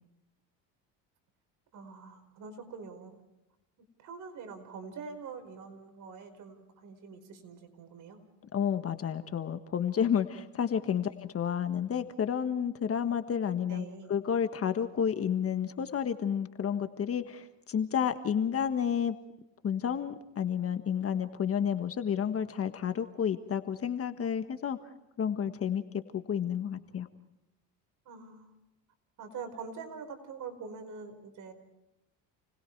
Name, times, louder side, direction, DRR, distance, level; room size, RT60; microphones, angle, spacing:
voice 1, 1.7-3.2 4.0-8.2 13.7-14.2 28.0-28.5 29.2-31.5, right 5 dB, 55° right, 6 dB, 5.0 m, -44 dB
voice 2, 8.5-19.2 19.6-24.8 25.2-27.1, left 8 dB, 40° left, 9 dB, 1.5 m, -31 dB
29.5 x 20.5 x 4.7 m, 0.90 s
supercardioid pair, 100°, 36 cm